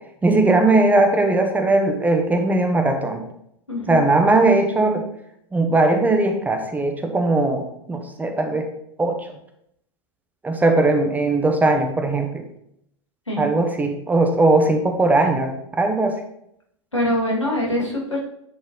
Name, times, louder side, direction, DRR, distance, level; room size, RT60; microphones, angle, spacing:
voice 1, 0.2-3.2 3.9-5.0 5.5-7.6 7.9-8.7 9.0-9.2 10.4-12.4 13.4-16.2, right 2 dB, 10° right, 5 dB, 0.9 m, -19 dB
voice 2, 3.7-4.0 13.3-13.5 16.9-18.3, left 1 dB, 85° left, -3 dB, 2.1 m, -23 dB
9.4 x 4.4 x 3.8 m, 0.74 s
figure-of-eight pair, 90°, 15 cm